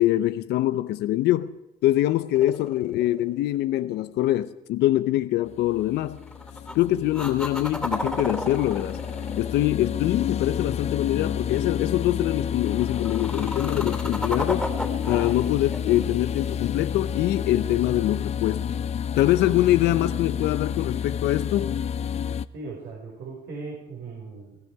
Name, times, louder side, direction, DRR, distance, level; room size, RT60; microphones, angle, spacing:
voice 1, 0.0-1.6 1.8-6.2 6.7-9.0 9.3-14.7 15.1-18.7 19.2-21.8, left 14 dB, 80° left, 0.7 m, -24 dB
sound 1, 2.3-3.6 6.2-6.8 7.1-10.4 12.7-17.0 20.8-20.9, left 1 dB, 5° left, 2.8 m, -33 dB
sound 2, 5.5-22.5, left 8 dB, 40° left, 0.5 m, -30 dB
voice 2, 22.5-24.6, right 3 dB, 75° right, 5.0 m, -38 dB
21.0 x 14.0 x 4.7 m
cardioid pair, 110°, 17 cm